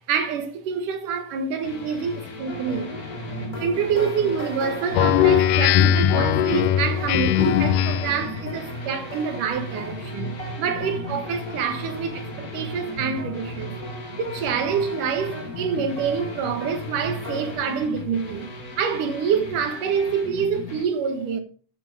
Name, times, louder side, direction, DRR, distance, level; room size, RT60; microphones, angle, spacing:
voice 1, 0.1-3.0 3.6-13.8 14.2-18.5 18.8-21.4, right 6 dB, 85° right, 3.1 m, -26 dB
sound 1, 1.6-20.8, left 3 dB, 35° left, 1.9 m, -38 dB
sound 2, 2.5-17.5, right 1 dB, 10° left, 4.0 m, -36 dB
Speech synthesizer, 4.9-8.3, left 10 dB, 85° left, 2.2 m, -19 dB
12.5 x 7.7 x 5.0 m
omnidirectional pair, 3.6 m